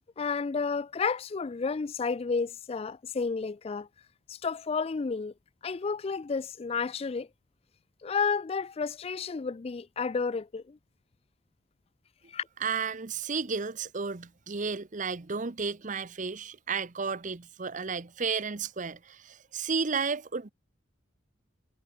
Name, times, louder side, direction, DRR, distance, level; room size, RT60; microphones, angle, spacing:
voice 1, 0.2-3.9 4.3-5.3 5.6-7.3 8.0-10.8 12.3-12.5, left 5 dB, 30° left, 0.3 m, -31 dB
voice 2, 12.6-20.5, right 5 dB, 40° right, 0.8 m, -33 dB
head